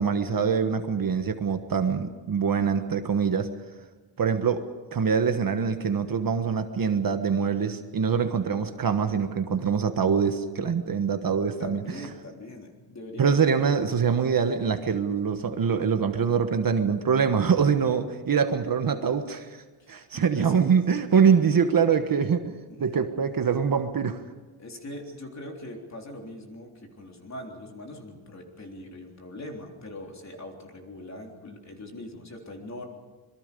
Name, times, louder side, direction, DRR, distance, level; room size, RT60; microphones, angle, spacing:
voice 1, 0.0-3.5 4.2-11.8 13.2-19.6 19.9-24.2, right 6 dB, 45° right, 7 dB, 1.3 m, -24 dB
voice 2, 11.6-13.6 19.8-20.6 22.7-23.1 24.6-32.8, left 1 dB, 35° left, 1 dB, 3.7 m, -41 dB
26.5 x 22.5 x 5.3 m, 1.4 s
wide cardioid pair, 160°, 49 cm